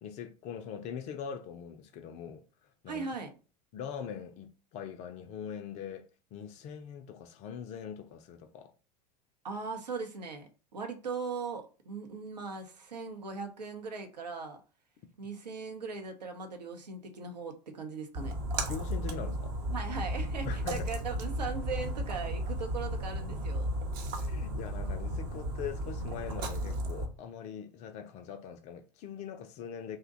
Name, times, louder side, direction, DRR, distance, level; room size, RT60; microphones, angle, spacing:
voice 1, 0.0-3.1 3.7-8.7 18.7-19.5 20.4-20.9 24.2-30.0, left 8 dB, 35° left, 0.4 m, -42 dB
voice 2, 2.9-3.3 9.4-14.6 15.2-18.3 19.7-23.7, right 4 dB, 75° right, 0.7 m, -39 dB
Splash splatter, 18.1-27.0, right 1 dB, 40° right, 0.7 m, -34 dB
2.7 x 2.1 x 3.8 m
figure-of-eight pair, 85°, 21 cm